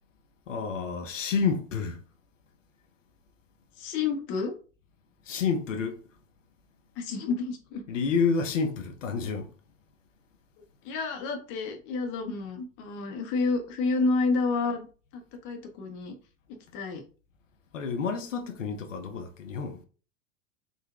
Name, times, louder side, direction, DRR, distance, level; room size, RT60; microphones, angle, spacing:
voice 1, 0.5-2.0 5.3-6.0 7.9-9.5 17.7-19.8, left 5 dB, 70° left, 0.6 m, -29 dB
voice 2, 3.8-4.6 7.0-7.8 10.8-14.9 15.1-16.1 16.5-17.0, left 4 dB, 30° left, 0.6 m, -30 dB
3.8 x 2.0 x 2.3 m
figure-of-eight pair, 90°, 39 cm